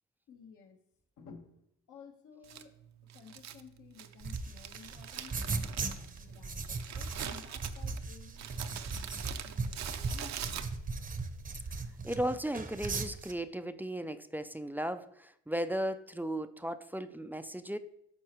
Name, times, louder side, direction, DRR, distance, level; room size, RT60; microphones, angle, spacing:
voice 1, 0.3-0.8 1.2-1.5 1.9-2.8 3.1-10.6, left 6 dB, 75° left, 1.3 m, -55 dB
Crumpling crinkling, 2.4-11.1, right 10 dB, 65° right, 0.6 m, -44 dB
sound 1, 4.2-13.3, right 3 dB, 30° right, 0.7 m, -38 dB
voice 2, 12.0-17.8, right 1 dB, 5° right, 0.3 m, -36 dB
12.0 x 4.3 x 3.0 m
cardioid pair, 90°, 30 cm